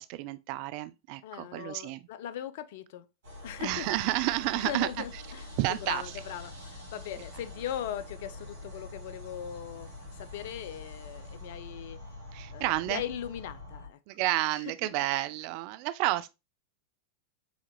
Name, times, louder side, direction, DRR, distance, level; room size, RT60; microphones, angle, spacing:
voice 1, 0.0-2.0 3.6-5.0 5.6-6.0 12.3-13.0 14.1-16.3, right 17 dB, 45° right, 0.3 m, -30 dB
voice 2, 1.2-3.1 3.4-3.9 4.5-9.9 10.2-12.0 12.5-14.0 14.8-15.1, left 10 dB, 50° left, 0.5 m, -39 dB
sound 1, 3.2-13.9, left 2 dB, 60° right, 2.0 m, -45 dB
5.0 x 3.9 x 2.2 m
figure-of-eight pair, 90°, 0 cm